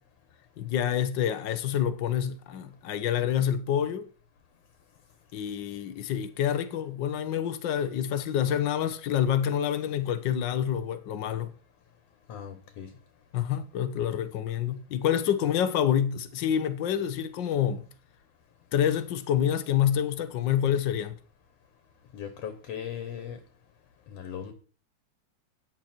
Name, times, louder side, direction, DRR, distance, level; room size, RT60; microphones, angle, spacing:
voice 1, 0.6-4.0 5.3-11.5 13.3-17.8 18.7-21.1, left 9 dB, 80° left, 1.0 m, -27 dB
voice 2, 12.3-12.9 22.1-23.4 24.1-24.5, left 8 dB, 65° left, 2.3 m, -38 dB
13.5 x 9.5 x 4.5 m
omnidirectional pair, 3.3 m